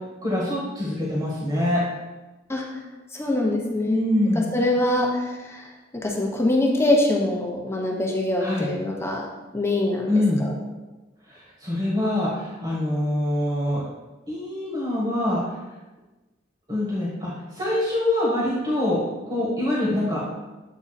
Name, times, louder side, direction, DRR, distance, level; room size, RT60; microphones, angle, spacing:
voice 1, 0.2-1.8 3.8-4.4 8.4-8.7 10.1-10.4 11.3-13.8 14.3-15.4 16.7-19.0 19.3-20.2, left 1 dB, 30° right, -6 dB, 1.7 m, -24 dB
voice 2, 2.5-2.8 3.1-4.0 4.3-5.7 5.9-9.3 9.5-10.1 10.4-10.5, left 1 dB, 15° left, -1 dB, 0.8 m, -24 dB
8.3 x 3.6 x 4.1 m, 1.1 s
head